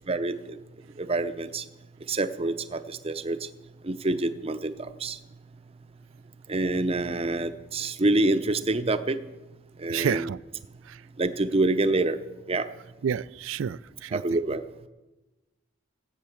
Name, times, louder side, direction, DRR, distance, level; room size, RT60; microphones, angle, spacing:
voice 1, 1.0-1.6 2.1-3.4 3.8-4.7 5.0-5.2 6.5-9.2 9.8-10.3 11.2-12.2 12.5-12.7 14.1-14.6, right 2 dB, 30° right, 10 dB, 0.7 m, -26 dB
voice 2, 9.9-10.4 10.9-11.0 13.0-14.2, right 7 dB, 65° right, 20 dB, 0.4 m, -29 dB
17.0 x 8.7 x 7.1 m, 1.1 s
head